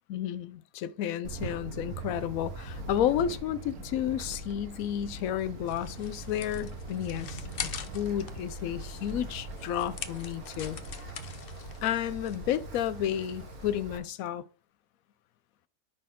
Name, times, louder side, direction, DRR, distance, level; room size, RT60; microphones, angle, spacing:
voice 1, 0.1-7.4 7.9-10.8 11.8-14.4, left 10 dB, 75° left, 1.0 m, -31 dB
Wind, 1.2-14.0, right 2 dB, 85° right, 1.9 m, -41 dB
sound 1, 2.7-11.2, right 5 dB, 65° right, 1.5 m, -54 dB
sound 2, 5.7-13.6, left 8 dB, 50° left, 0.7 m, -44 dB
10.0 x 4.2 x 3.7 m
omnidirectional pair, 1.5 m